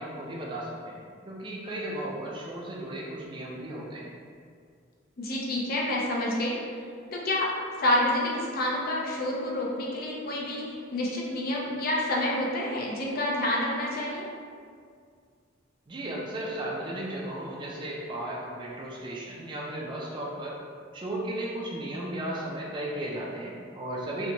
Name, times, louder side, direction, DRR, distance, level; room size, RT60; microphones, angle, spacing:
voice 1, 0.0-4.2 15.9-20.6 20.9-24.3, right 1 dB, 25° right, -3 dB, 0.3 m, -35 dB
voice 2, 5.2-6.6 7.1-7.5 7.8-14.3, left 1 dB, 50° left, -3 dB, 0.5 m, -28 dB
2.8 x 2.1 x 2.6 m, 2.2 s
head